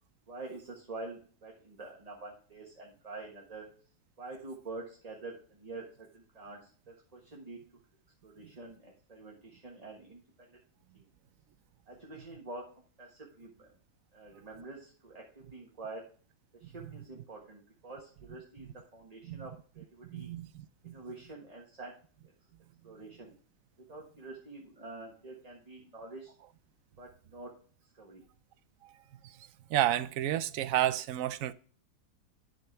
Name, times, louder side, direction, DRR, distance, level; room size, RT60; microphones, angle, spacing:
voice 1, 0.3-3.7 4.2-6.6 6.9-7.6 8.2-10.2 10.5-10.6 10.9-11.0 11.9-12.6 13.0-13.7 14.1-16.0 16.6-20.3 20.8-21.9 22.8-23.3 23.9-26.3 27.0-27.5 28.0-28.2, right 3 dB, 25° right, 1.5 m, -46 dB
voice 2, 20.1-20.9 29.7-31.5, right 12 dB, 70° right, 0.9 m, -31 dB
10.0 x 6.3 x 3.3 m
omnidirectional pair, 1.7 m